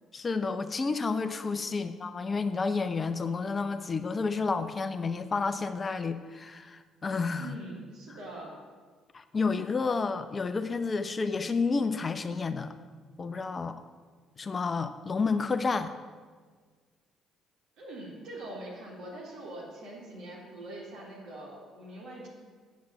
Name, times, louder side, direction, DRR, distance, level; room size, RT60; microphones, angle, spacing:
voice 1, 0.1-7.6 9.1-12.7 13.2-13.8 14.4-15.9, left 4 dB, 35° left, 10 dB, 0.7 m, -30 dB
voice 2, 7.4-8.6 17.8-22.3, right 1 dB, 65° right, -3 dB, 3.6 m, -43 dB
8.4 x 7.6 x 8.5 m, 1.5 s
hypercardioid pair, 50°, 0 cm